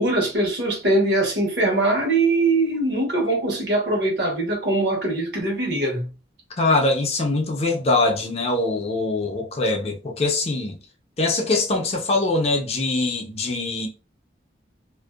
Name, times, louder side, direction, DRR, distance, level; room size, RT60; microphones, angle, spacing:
voice 1, 0.0-6.1, right 2 dB, 65° right, 1.1 m, -22 dB
voice 2, 6.6-10.8 11.2-13.9, left 2 dB, 35° left, 0.4 m, -23 dB
2.5 x 2.1 x 2.3 m
head